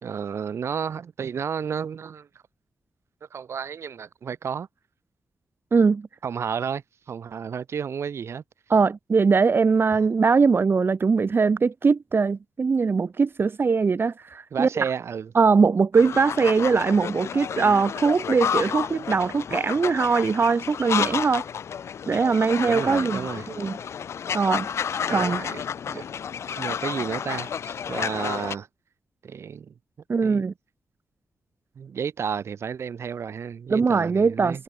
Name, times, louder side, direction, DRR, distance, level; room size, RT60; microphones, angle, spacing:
voice 1, 0.0-2.3 3.3-4.7 6.2-6.8 7.1-8.4 14.5-15.3 22.6-23.5 25.1-26.0 26.5-28.7 29.2-29.7 30.2-30.5 31.8-34.6, right 7 dB, 70° right, 2.7 m, -32 dB
voice 2, 5.7-6.1 8.7-14.9 15.3-21.4 22.1-23.2 23.6-23.8 24.3-24.7 25.1-25.4 30.1-30.5 33.7-34.6, right 5 dB, 50° right, 2.1 m, -21 dB
sound 1, 15.9-28.5, left 7 dB, 75° left, 1.9 m, -31 dB
cardioid pair, 55°, 5 cm